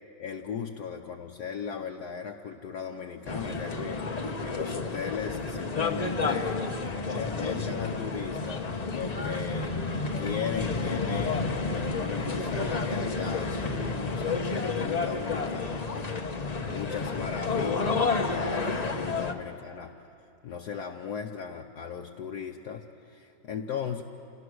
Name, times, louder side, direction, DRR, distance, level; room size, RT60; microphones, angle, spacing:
voice 1, 0.2-4.0 4.4-6.6 7.1-9.7 10.2-15.9 16.6-19.9 20.4-24.0, left 7 dB, 65° left, 2 dB, 1.3 m, -37 dB
sound 1, 3.2-19.3, left 4 dB, 35° left, 0.6 m, -30 dB
29.0 x 18.5 x 6.4 m, 2.7 s
omnidirectional pair, 2.1 m